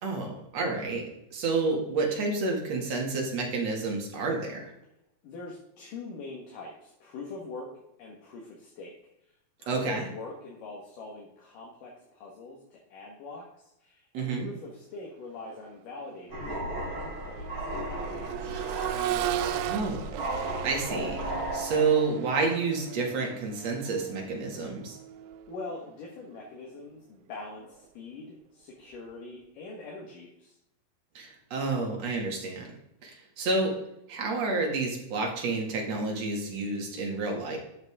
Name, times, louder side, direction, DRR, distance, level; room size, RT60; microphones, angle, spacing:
voice 1, 0.0-4.7 9.7-10.0 14.1-14.5 19.7-20.1 20.6-21.2 21.5-25.0 31.1-32.7 33.0-33.8 34.1-37.6, right 3 dB, 50° right, 0 dB, 3.0 m, -29 dB
voice 2, 5.2-7.7 8.0-8.9 9.6-18.9 25.5-30.6, left 3 dB, 70° left, -2 dB, 3.1 m, -43 dB
Accelerating revving vroom, 15.4-15.6 16.0-25.9 27.6-27.7, right 13 dB, 85° right, 2.3 m, -37 dB
sound 1, 16.3-22.3, right 1 dB, 15° right, 4.1 m, -35 dB
12.0 x 7.7 x 3.6 m, 0.84 s
omnidirectional pair, 4.1 m